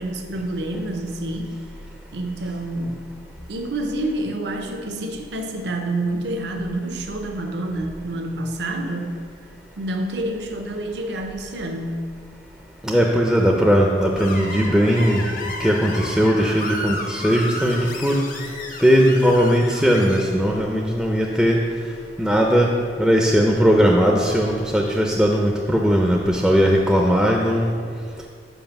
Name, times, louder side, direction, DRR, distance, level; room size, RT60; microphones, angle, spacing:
voice 1, 0.0-1.6 2.1-3.0 3.5-9.2 9.8-12.0, right 1 dB, 75° right, 4 dB, 0.6 m, -28 dB
voice 2, 12.8-15.3 15.6-18.3 18.8-21.6 22.2-27.7, equal, 5° right, -1 dB, 0.4 m, -18 dB
Screech, 14.2-20.2, left 2 dB, 50° left, 0.7 m, -32 dB
5.4 x 5.0 x 5.9 m, 2.1 s
head